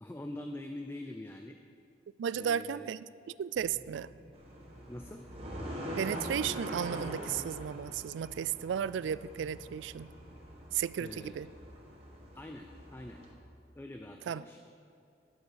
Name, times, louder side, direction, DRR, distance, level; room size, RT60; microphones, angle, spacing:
voice 1, 0.0-1.6 2.3-2.9 4.9-5.3 11.0-11.4 12.3-13.3 13.8-14.6, left 1 dB, 15° left, 4 dB, 0.4 m, -44 dB
voice 2, 2.2-3.0 3.4-4.1 6.0-10.1 10.7-11.5 14.3-14.4, right 8 dB, 90° right, 18 dB, 0.3 m, -34 dB
sound 1, 3.5-10.4, right 1 dB, 30° left, 1.3 m, -55 dB
sound 2, 4.3-13.3, equal, 35° right, 1.7 m, -43 dB
11.0 x 8.8 x 6.4 m, 2.5 s
head